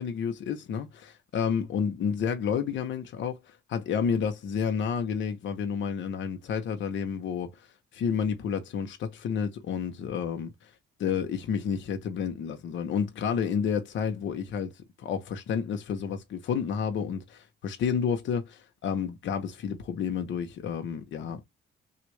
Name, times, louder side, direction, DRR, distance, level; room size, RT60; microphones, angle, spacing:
voice 1, 0.0-7.7 7.9-10.7 11.0-21.5, left 7 dB, 70° left, 0.8 m, -30 dB
3.4 x 2.5 x 3.2 m
cardioid pair, 90°, 20 cm